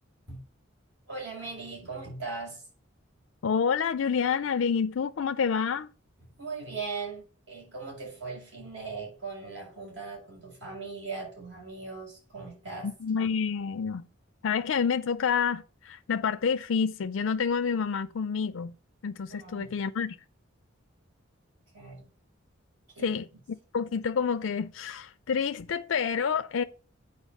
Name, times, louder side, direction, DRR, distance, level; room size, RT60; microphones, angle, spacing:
voice 1, 1.1-2.6 6.4-12.9 19.3-19.8 21.7-22.1 22.9-23.2, right 4 dB, 65° right, 5.2 m, -39 dB
voice 2, 3.4-5.9 12.8-14.0 14.4-18.7 19.0-20.2 23.0-26.6, left 6 dB, 75° left, 0.4 m, -28 dB
8.1 x 4.8 x 6.4 m
head